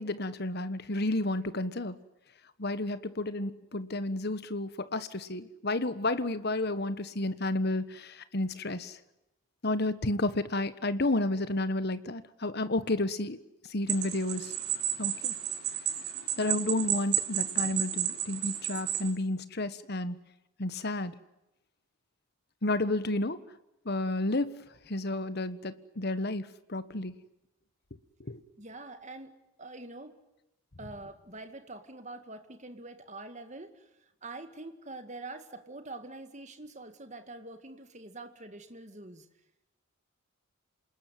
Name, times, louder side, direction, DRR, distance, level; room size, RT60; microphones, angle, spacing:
voice 1, 0.0-2.0 2.6-9.0 9.6-13.4 13.7-14.5 15.0-15.3 16.4-20.2 20.6-21.1 22.6-23.4 23.8-27.2 28.2-28.4, left 2 dB, 50° left, 13 dB, 1.3 m, -31 dB
sound 1, 13.9-19.1, right 10 dB, 85° right, 3.9 m, -32 dB
voice 2, 28.6-30.2 30.8-39.3, right 2 dB, 35° right, 8 dB, 2.1 m, -45 dB
27.5 x 20.0 x 9.4 m, 0.93 s
head